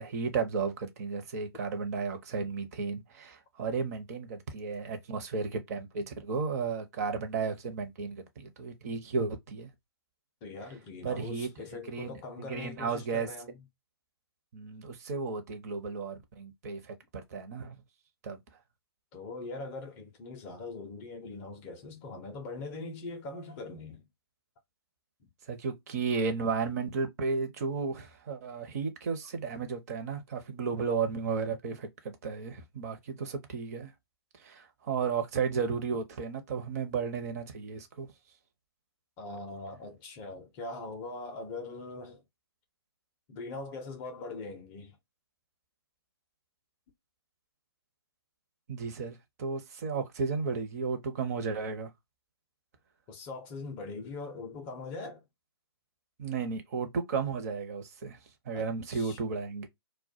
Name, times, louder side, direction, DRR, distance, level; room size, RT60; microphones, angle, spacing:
voice 1, 0.0-9.7 11.0-11.5 11.9-12.2 12.5-13.3 14.5-17.7 18.2-18.4 25.5-33.9 34.4-38.1 48.7-51.9 56.2-58.2 58.5-59.7, right 5 dB, 35° right, 0.7 m, -33 dB
voice 2, 10.4-13.6 19.1-24.0 39.2-42.2 43.3-45.0 53.1-55.2 58.5-59.2, left 3 dB, 20° left, 0.4 m, -41 dB
2.2 x 2.2 x 2.6 m
figure-of-eight pair, 140°, 14 cm